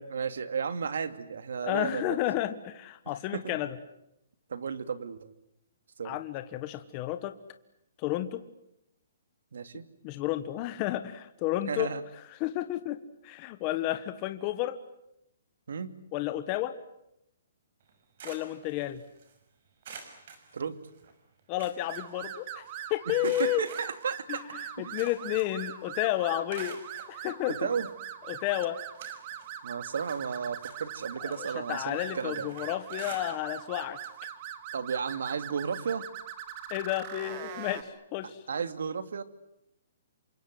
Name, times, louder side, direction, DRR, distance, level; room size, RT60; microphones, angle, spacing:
voice 1, 0.1-2.2 3.3-3.6 4.5-5.3 6.0-6.2 9.5-9.9 11.7-12.0 15.7-15.9 20.5-20.8 23.2-24.4 24.8-24.9 27.6-27.9 29.6-32.5 34.7-36.1 38.5-39.2, right 6 dB, 75° right, 11 dB, 2.6 m, -33 dB
voice 2, 1.6-3.8 6.0-7.3 8.0-8.4 10.0-11.9 12.4-14.8 16.1-16.7 18.2-19.0 21.5-22.6 22.9-23.7 24.3-26.8 27.1-27.5 28.3-28.8 31.2-34.0 36.7-38.4, left 15 dB, 25° left, 10 dB, 1.3 m, -31 dB
sound 1, 17.8-19.4 19.8-21.1 21.4-22.7 23.2-25.7 26.0-27.1 27.8-27.9 28.4-29.6 29.9-33.7 34.0-34.2 34.6-34.7 35.9-36.0, right 5 dB, 45° right, 6.0 m, -48 dB
sound 2, 21.9-37.8, right 10 dB, 30° right, 2.4 m, -42 dB
28.5 x 25.0 x 7.8 m, 0.82 s
hypercardioid pair, 165°, 0 cm